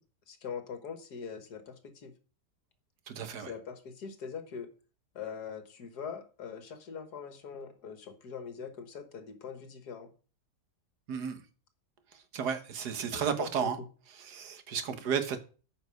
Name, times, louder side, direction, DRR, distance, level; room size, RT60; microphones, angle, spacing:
voice 1, 0.3-2.1 3.4-4.7 5.2-10.1 13.0-13.7 14.9-15.1, left 6 dB, 70° left, 2.0 m, -42 dB
voice 2, 3.1-3.5 11.1-11.4 12.3-13.8 14.2-15.4, right 7 dB, 75° right, 1.8 m, -33 dB
9.2 x 5.6 x 6.3 m
omnidirectional pair, 1.8 m